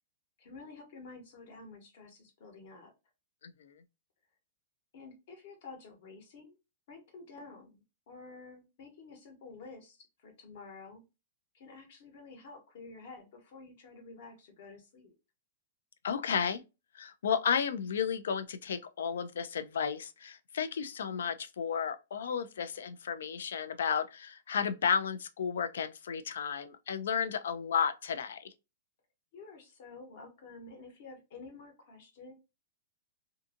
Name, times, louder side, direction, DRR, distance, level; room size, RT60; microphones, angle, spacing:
voice 1, 0.4-2.9 4.9-6.6 6.9-11.0 11.5-15.2 29.3-32.3, left 3 dB, 45° left, 0.9 m, -50 dB
voice 2, 3.4-3.8 16.0-16.6 16.9-28.5, left 7 dB, 90° left, 0.3 m, -33 dB
2.5 x 2.5 x 2.4 m
supercardioid pair, 175°, 0 cm